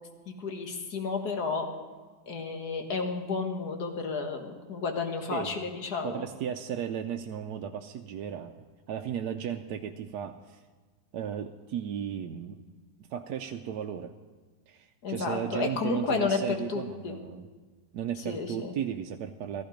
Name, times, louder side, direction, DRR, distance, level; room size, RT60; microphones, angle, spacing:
voice 1, 0.3-1.7 2.3-6.3 15.0-17.2 18.3-18.7, left 4 dB, 70° left, 4 dB, 2.1 m, -32 dB
voice 2, 5.3-5.6 6.0-8.6 8.9-10.6 11.1-12.6 13.0-14.1 14.7-17.5 17.9-19.6, right 8 dB, 80° right, 5 dB, 1.2 m, -35 dB
15.5 x 14.5 x 5.1 m, 1.4 s
omnidirectional pair, 1.8 m